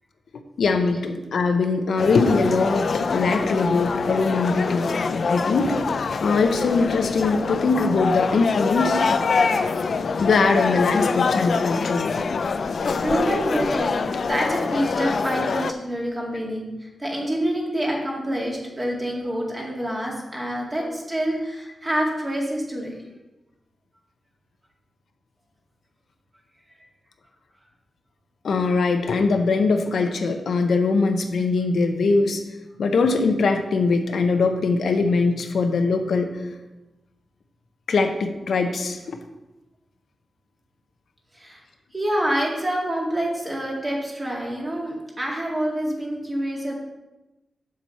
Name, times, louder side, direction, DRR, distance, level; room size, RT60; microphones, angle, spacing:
voice 1, 0.6-5.7 6.2-9.0 10.2-12.2 28.4-32.4 32.8-36.3 37.9-39.2, left 4 dB, 75° left, 5 dB, 0.8 m, -21 dB
sound 1, 2.0-15.7, left 4 dB, 55° left, 0.4 m, -25 dB
voice 2, 13.0-22.9 41.3-41.6 41.9-46.7, right 1 dB, 20° right, -2 dB, 2.1 m, -27 dB
7.4 x 7.4 x 4.2 m, 1.0 s
wide cardioid pair, 130°, 0 cm